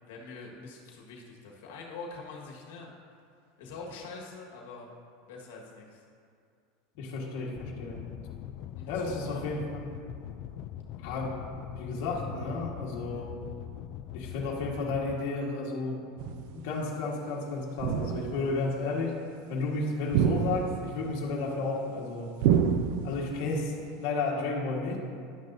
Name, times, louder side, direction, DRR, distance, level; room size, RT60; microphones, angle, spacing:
voice 1, 0.0-2.9 3.6-4.9 5.3-6.0 8.8-9.6, left 4 dB, 85° left, -1 dB, 1.5 m, -44 dB
voice 2, 7.0-8.0 8.9-9.9 11.0-11.4 11.8-13.4 14.1-16.1 16.5-19.2 19.5-22.3 23.0-25.0, left 3 dB, 60° left, -4 dB, 1.5 m, -32 dB
sound 1, 7.6-15.2, left 11 dB, 45° left, 0.3 m, -42 dB
sound 2, 16.2-16.6 17.8-18.5 20.1-21.0 22.4-23.4, right 8 dB, 60° right, 0.5 m, -27 dB
11.0 x 10.0 x 2.7 m, 2.4 s
supercardioid pair, 155°, 0 cm